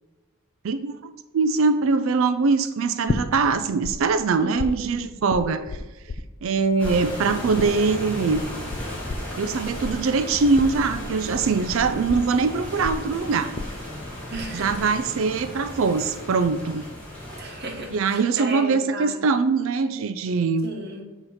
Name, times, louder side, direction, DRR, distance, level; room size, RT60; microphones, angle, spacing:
voice 1, 0.6-5.6 6.4-8.5 9.4-13.5 14.5-16.8 17.9-20.7, right 4 dB, 70° right, 11 dB, 0.4 m, -22 dB
sound 1, 3.1-3.9 4.2-6.6 6.8-14.5 14.7-15.2, left 3 dB, 35° left, 0.3 m, -32 dB
voice 2, 4.4-5.0 5.4-5.7 14.3-14.7 17.4-19.2 20.6-21.0, right 2 dB, 50° right, 2 dB, 1.1 m, -34 dB
sound 2, 6.8-18.0, left 1 dB, 10° left, 1.7 m, -35 dB
7.7 x 2.9 x 5.7 m, 1.2 s
head